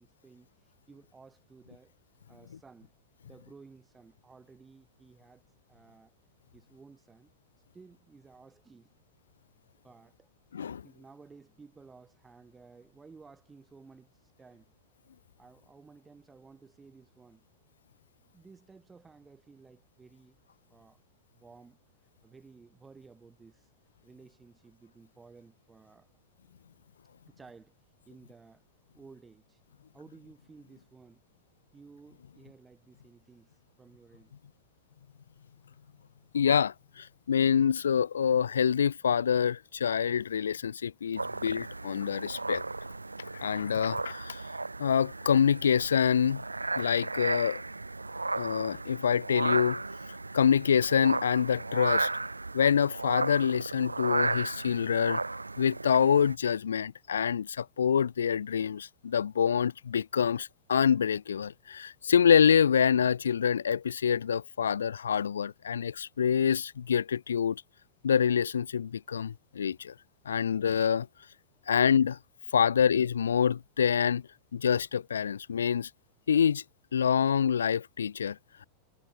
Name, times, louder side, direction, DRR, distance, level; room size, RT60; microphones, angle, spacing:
voice 1, 0.0-2.0 2.3-2.9 3.2-6.1 6.5-7.3 7.7-8.9 9.8-10.3 10.8-14.7 15.4-17.5 18.2-20.4 20.7-21.0 21.3-23.7 24.0-26.2 27.3-27.8 28.1-28.7 28.9-29.6 29.9-31.2 31.7-34.3 71.5-71.7, right 4 dB, 15° right, 4.7 m, -55 dB
voice 2, 36.3-42.6 43.3-44.5 44.8-46.4 46.8-47.6 48.4-49.8 50.3-52.1 52.5-55.2 55.6-67.6 68.0-69.9 70.3-71.1 71.7-72.2 72.5-74.2 74.5-75.9 76.3-76.6 76.9-78.4, left 7 dB, 70° left, 0.8 m, -26 dB
sound 1, 41.2-56.4, right 3 dB, 80° right, 1.4 m, -34 dB
figure-of-eight pair, 90°, 0 cm